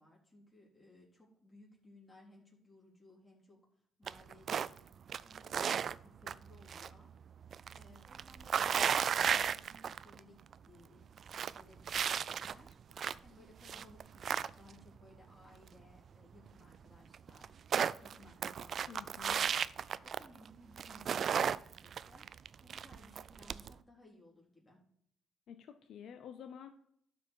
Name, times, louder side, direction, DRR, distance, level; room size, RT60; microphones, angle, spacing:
voice 1, 0.0-3.6 4.0-4.9 5.2-7.1 7.7-17.6 18.0-22.2 22.6-24.8, left 1 dB, 20° left, -3 dB, 4.0 m, -61 dB
sound 1, 4.1-4.8 5.1-6.9 7.2-10.2 10.5-10.6 11.0-13.3 13.6-14.9 16.5-16.6 16.7-16.8 17.1-20.5 20.8-23.7, right 7 dB, 55° right, 0.3 m, -34 dB
voice 2, 18.9-19.4 25.5-26.7, left 8 dB, 75° left, 7 dB, 0.7 m, -50 dB
12.0 x 5.2 x 4.7 m, 0.68 s
cardioid pair, 90°, 0 cm